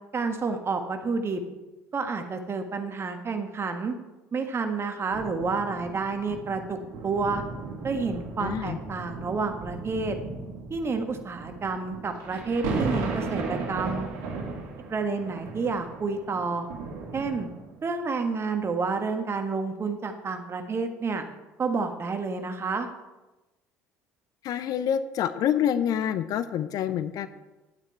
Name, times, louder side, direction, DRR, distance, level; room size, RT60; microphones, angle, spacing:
voice 1, 0.1-1.4 1.9-3.9 4.3-6.8 7.0-7.4 7.8-10.2 10.7-14.0 14.9-16.7 17.1-17.5 17.8-21.2 21.6-22.9, right 4 dB, 30° right, 6 dB, 1.4 m, -29 dB
Clean Thunder, 5.1-17.9 18.6-18.7, right 3 dB, 65° right, 2.0 m, -36 dB
voice 2, 8.4-8.8 24.4-27.3, left 9 dB, 55° left, 13 dB, 0.6 m, -27 dB
10.5 x 8.8 x 4.4 m, 1.1 s
hypercardioid pair, 60°, 8 cm